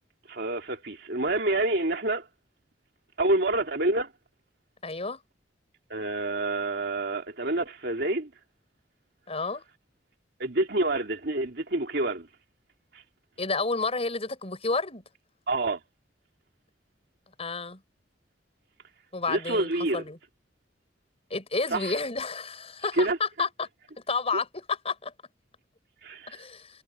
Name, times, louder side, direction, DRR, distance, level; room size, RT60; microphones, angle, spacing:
voice 1, 0.3-2.3 3.2-4.1 5.9-8.3 10.4-12.3 12.9-13.0 15.5-15.8 19.3-20.0 21.7-21.9 22.9-23.2 26.0-26.4, right 2 dB, 65° right, 2.9 m, -27 dB
voice 2, 4.8-5.2 9.3-9.6 13.4-15.0 17.4-17.8 19.1-20.2 21.3-23.7 24.1-25.1 26.3-26.7, left 4 dB, 35° left, 6.3 m, -30 dB
head